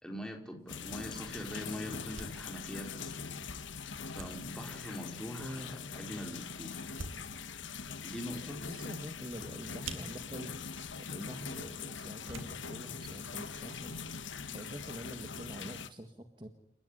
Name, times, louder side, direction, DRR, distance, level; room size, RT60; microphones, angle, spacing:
voice 1, 0.0-3.2 4.1-6.8 8.0-8.6, equal, 5° left, 3 dB, 4.4 m, -43 dB
sound 1, 0.6-14.1, right 3 dB, 90° right, 3.9 m, -52 dB
sound 2, 0.7-15.9, left 5 dB, 70° left, 1.6 m, -42 dB
voice 2, 5.4-5.7 8.7-10.6 11.0-14.0 14.5-16.5, equal, 25° right, 6 dB, 1.7 m, -45 dB
29.5 x 15.5 x 9.9 m, 0.71 s
head